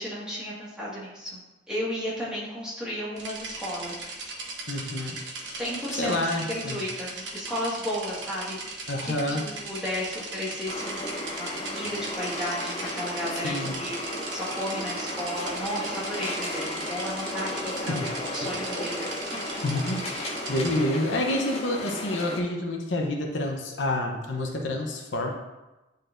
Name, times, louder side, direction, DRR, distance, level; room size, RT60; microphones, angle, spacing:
voice 1, 0.0-1.4 1.7-3.9 5.5-19.1 19.5-19.6, equal, 5° right, -8 dB, 1.9 m, -34 dB
sound 1, 3.2-20.8, right 3 dB, 65° right, 1.2 m, -38 dB
voice 2, 4.7-5.2 5.5-5.6 6.0-6.8 8.9-9.4 13.3-13.7 17.9-18.0 18.4-18.7 19.6-20.0 20.5-25.3, left 1 dB, 70° left, 1 dB, 0.8 m, -28 dB
sound 2, 10.7-22.4, left 1 dB, 35° left, 0.8 m, -34 dB
9.9 x 4.0 x 2.6 m, 1.1 s
head